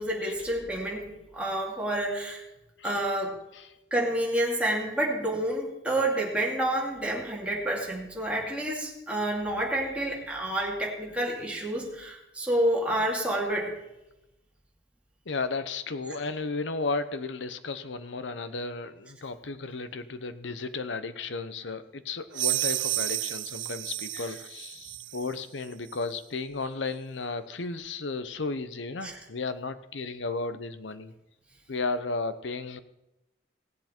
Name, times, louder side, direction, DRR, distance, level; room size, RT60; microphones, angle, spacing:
voice 1, 0.0-2.4 2.8-3.4 3.9-13.8 29.0-29.2, right 1 dB, 5° right, -3 dB, 2.6 m, -29 dB
voice 2, 15.3-31.1 31.7-32.8, left 3 dB, 85° left, 11 dB, 0.8 m, -34 dB
sound 1, 22.3-25.3, right 17 dB, 85° right, 0.4 m, -31 dB
17.5 x 8.1 x 4.4 m, 0.94 s
head